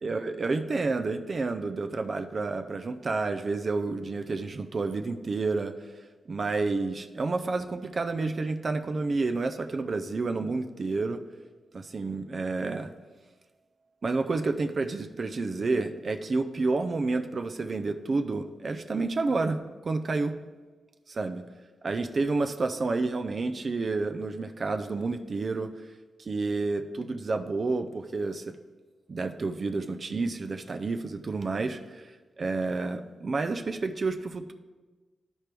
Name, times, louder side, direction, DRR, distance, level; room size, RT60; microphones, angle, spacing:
voice 1, 0.0-6.0 6.3-11.2 11.7-12.9 14.0-20.3 21.1-21.4 21.8-25.7 26.2-28.5 29.1-34.5, right 3 dB, 40° right, 7 dB, 0.4 m, -30 dB
13.0 x 4.5 x 3.3 m, 1.3 s
wide cardioid pair, 105°, 0 cm